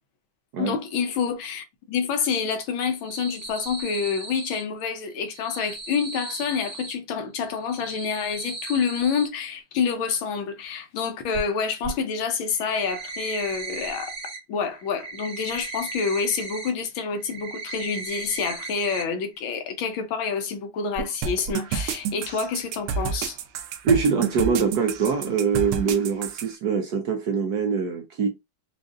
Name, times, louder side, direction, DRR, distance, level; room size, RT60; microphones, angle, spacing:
voice 1, 0.6-14.1 14.5-23.4, left 6 dB, 80° left, 1.6 m, -28 dB
sound 1, 2.8-4.6 5.2-6.9 7.5-9.3 11.3-11.4 11.8-11.9 12.4-14.4 14.7-16.7 17.1-19.0 19.4-19.5 19.9-20.0 21.0-21.1 21.5-21.6, right 3 dB, 45° right, 1.3 m, -36 dB
sound 2, 21.2-26.5, right 7 dB, 85° right, 1.5 m, -29 dB
voice 2, 23.8-28.3, right 5 dB, 65° right, 1.0 m, -23 dB
5.2 x 2.4 x 2.4 m
omnidirectional pair, 2.3 m